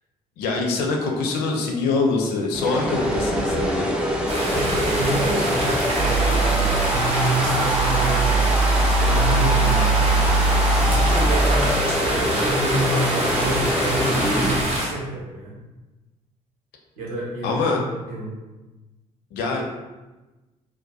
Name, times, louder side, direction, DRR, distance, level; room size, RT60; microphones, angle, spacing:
voice 1, 0.4-4.0 17.4-17.8 19.3-19.6, left 3 dB, 60° left, 0 dB, 0.5 m, -24 dB
sound 1, 2.5-14.5, equal, 5° right, 0.4 m, -24 dB
sound 2, 4.3-14.9, right 1 dB, 35° right, 0.8 m, -26 dB
voice 2, 4.5-8.5 8.8-10.1 10.8-11.7 12.0-15.6 17.0-18.3, right 1 dB, 70° right, -7 dB, 0.9 m, -28 dB
sound 3, 6.0-11.6, right 3 dB, 90° right, 0.5 m, -22 dB
2.4 x 2.1 x 2.3 m, 1.1 s
figure-of-eight pair, 45°, 20 cm